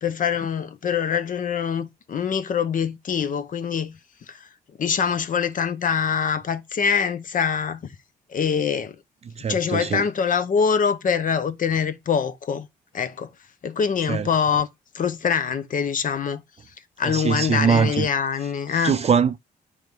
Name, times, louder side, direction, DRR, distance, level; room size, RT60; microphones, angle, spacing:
voice 1, 0.0-3.9 4.3-4.4 4.8-7.8 8.3-9.0 9.5-12.7 12.9-13.3 13.6-14.7 14.9-16.4 17.0-18.9, left 7 dB, 55° left, 0.7 m, -24 dB
voice 2, 9.4-10.1 14.1-14.3 17.0-18.1 18.7-19.4, right 6 dB, 40° right, 0.4 m, -22 dB
8.2 x 3.1 x 5.3 m
cardioid pair, 70°, 17 cm